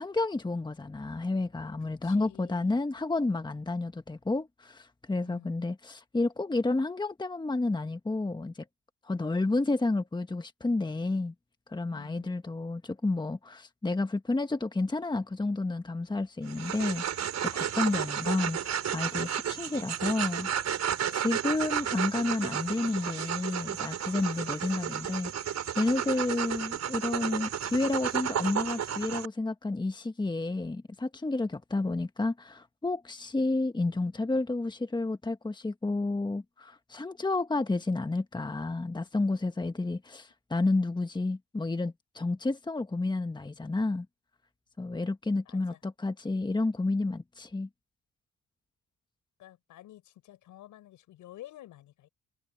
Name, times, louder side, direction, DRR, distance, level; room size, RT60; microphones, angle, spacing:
voice 1, 0.0-8.6 9.0-11.3 11.7-25.3 25.7-44.1 44.8-47.7, left 2 dB, 15° left, 1.5 m, -31 dB
voice 2, 1.8-2.8 5.2-5.7 11.9-12.4 45.4-45.8 49.4-52.1, left 14 dB, 85° left, 6.7 m, -51 dB
sound 1, 16.5-29.3, right 9 dB, 60° right, 4.8 m, -32 dB
cardioid pair, 90°, 30 cm